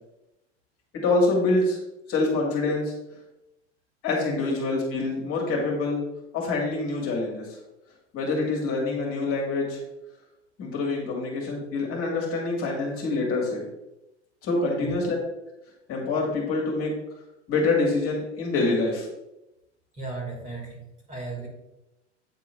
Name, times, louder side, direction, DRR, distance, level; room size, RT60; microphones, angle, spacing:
voice 1, 1.0-1.8 2.1-2.9 4.0-6.0 6.3-7.5 8.1-9.8 10.6-13.6 14.4-15.2 15.9-16.9 17.5-19.1, left 3 dB, 40° left, -2 dB, 2.2 m, -25 dB
voice 2, 20.0-20.8 21.1-21.5, right 3 dB, 20° right, -2 dB, 2.4 m, -35 dB
8.7 x 3.8 x 3.4 m, 0.90 s
hypercardioid pair, 95°, 35 cm